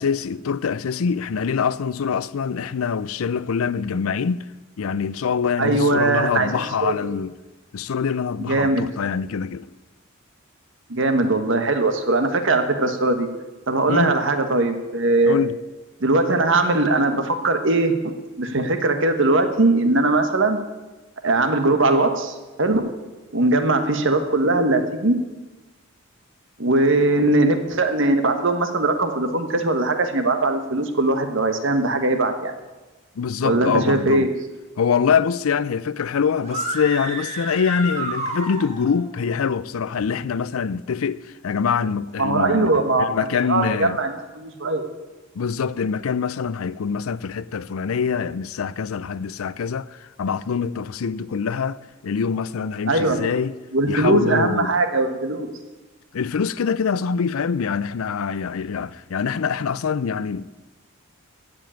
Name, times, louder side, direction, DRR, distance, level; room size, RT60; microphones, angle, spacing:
voice 1, 0.0-4.4 4.8-7.3 7.7-9.7 13.9-14.1 15.3-15.5 33.2-34.3 34.8-42.7 43.0-44.0 45.3-53.6 53.9-54.7 56.1-60.6, left 6 dB, 80° left, 0.5 m, -24 dB
voice 2, 5.6-6.5 6.8-6.9 8.4-8.8 10.9-13.3 13.7-15.4 16.0-20.6 21.2-22.9 23.3-25.2 26.6-32.5 33.4-34.4 42.2-43.1 43.4-44.9 52.9-53.3 53.7-55.5, right 2 dB, 60° right, 1.3 m, -20 dB
sound 1, 36.4-39.0, right 2 dB, 35° right, 2.1 m, -30 dB
15.5 x 5.3 x 8.8 m
head